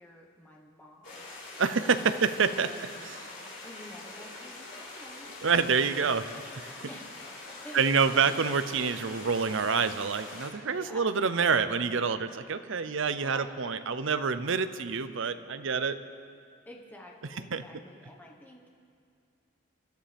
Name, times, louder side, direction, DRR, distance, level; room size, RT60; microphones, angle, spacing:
voice 1, 0.0-2.3 2.6-3.0 3.3-5.3 6.9-7.0 7.6-7.8 8.1-8.3 10.7-11.0 13.2-13.7 16.6-18.8, left 1 dB, 10° left, -1 dB, 1.3 m, -49 dB
sound 1, 1.0-10.5, left 2 dB, 60° left, 3.9 m, -44 dB
voice 2, 1.6-3.2 5.4-6.3 6.5-6.7 7.7-16.0 17.5-17.6, right 5 dB, 65° right, 11 dB, 0.6 m, -27 dB
25.0 x 12.5 x 3.5 m, 2.4 s
head